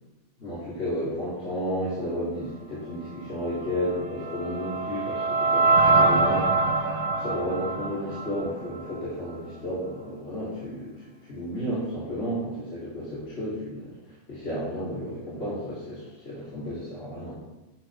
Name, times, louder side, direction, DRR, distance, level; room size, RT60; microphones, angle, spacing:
voice 1, 0.4-6.8 7.1-17.3, equal, 45° left, -10 dB, 3.0 m, -32 dB
sound 1, 3.8-9.0, right 3 dB, 60° right, 1.2 m, -24 dB
12.5 x 5.9 x 4.6 m, 1.0 s
omnidirectional pair, 1.5 m